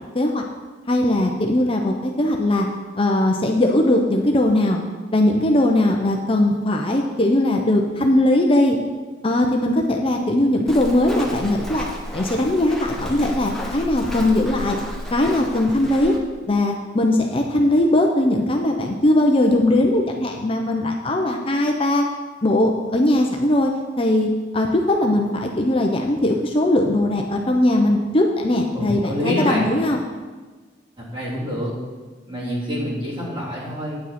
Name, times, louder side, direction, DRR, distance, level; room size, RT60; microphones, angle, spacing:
voice 1, 0.9-2.7 3.0-4.8 5.1-8.8 9.2-11.9 12.1-14.8 15.1-16.1 16.5-22.0 22.4-23.7 24.0-30.0, left 1 dB, 30° left, 2 dB, 0.7 m, -19 dB
Walk footsteps, 10.7-16.2, equal, ahead, 1.1 m, -32 dB
voice 2, 28.7-29.7 31.0-31.7 32.3-34.0, equal, 30° right, -7 dB, 3.4 m, -26 dB
9.5 x 8.9 x 4.3 m, 1.3 s
head